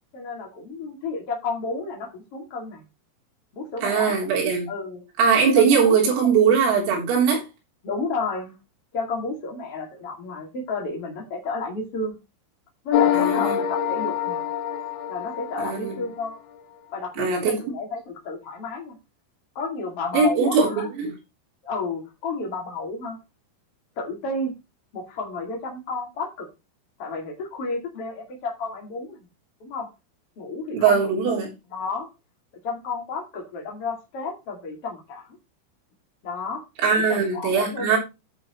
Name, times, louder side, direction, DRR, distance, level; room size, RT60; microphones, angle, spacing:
voice 1, 0.1-2.8 3.5-4.2 4.7-5.1 5.5-6.3 7.8-8.5 8.9-12.1 12.8-14.4 15.1-16.4 16.9-19.0 19.5-20.9 21.6-23.2 24.0-24.5 24.9-26.5 27.0-29.2 29.6-29.9 30.4-31.0 31.3-31.4 31.7-32.1 32.6-35.3 36.2-36.6 37.0-37.9, left 3 dB, 40° left, -1 dB, 2.4 m, -31 dB
voice 2, 3.8-4.7 5.2-7.4 13.1-13.6 15.6-16.0 17.2-17.6 20.1-21.1 30.7-31.5 36.8-38.0, right 6 dB, 75° right, -2 dB, 6.2 m, -20 dB
sound 1, 12.9-16.3, left 10 dB, 80° left, 3.6 m, -25 dB
16.0 x 5.7 x 3.1 m, 0.26 s
omnidirectional pair, 6.0 m